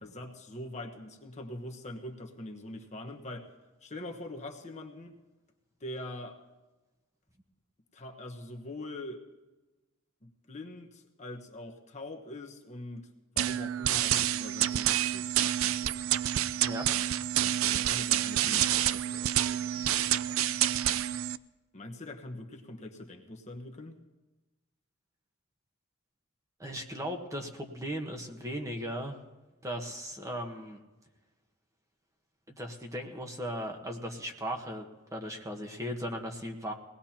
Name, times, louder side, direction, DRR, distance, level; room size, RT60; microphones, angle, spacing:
voice 1, 0.0-3.5 3.8-5.2 5.8-6.4 7.9-9.2 10.2-13.1 13.3-15.9 17.6-20.6 21.7-24.0, left 1 dB, 30° left, 2 dB, 1.2 m, -43 dB
sound 1, 13.4-21.4, right 12 dB, 70° right, 0.4 m, -28 dB
voice 2, 26.6-29.2 29.6-30.8 32.6-36.7, equal, 15° right, 3 dB, 1.2 m, -37 dB
22.0 x 18.0 x 2.9 m, 1.1 s
head